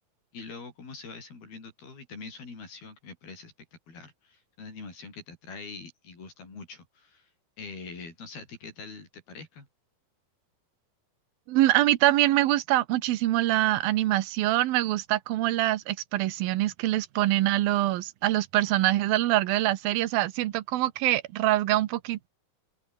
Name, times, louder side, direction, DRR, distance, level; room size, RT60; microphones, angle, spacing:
voice 1, 0.3-3.5 3.9-7.3 7.6-9.7, left 4 dB, 80° left, 9.5 m, -44 dB
voice 2, 11.5-22.3, right 15 dB, 80° right, 2.9 m, -24 dB
omnidirectional pair, 4.3 m